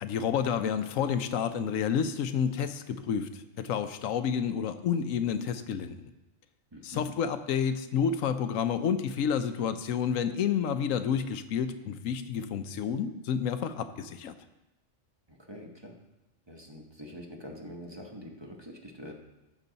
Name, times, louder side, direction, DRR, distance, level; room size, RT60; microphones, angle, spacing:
voice 1, 0.0-6.1 6.8-14.3, left 7 dB, 85° left, 10 dB, 1.0 m, -30 dB
voice 2, 6.7-7.1 15.3-15.9 16.5-19.1, equal, 20° right, 0 dB, 1.1 m, -45 dB
14.0 x 6.2 x 4.0 m, 0.99 s
omnidirectional pair, 1.4 m